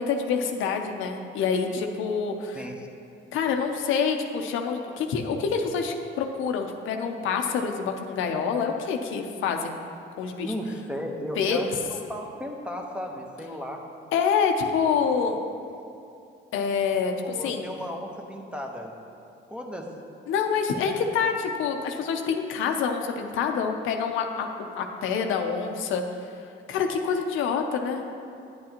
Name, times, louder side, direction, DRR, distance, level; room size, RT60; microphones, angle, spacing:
voice 1, 0.0-2.6 3.3-9.7 10.2-10.5 11.3-11.6 14.1-15.4 16.5-17.6 20.3-24.5 24.7-26.0 26.7-28.0, left 6 dB, 90° left, 4 dB, 0.6 m, -26 dB
voice 2, 2.5-2.9 10.4-13.8 17.2-18.9 19.5-19.9, equal, 5° right, 1 dB, 0.9 m, -35 dB
9.2 x 8.6 x 2.9 m, 2.6 s
cardioid pair, 90°, 20 cm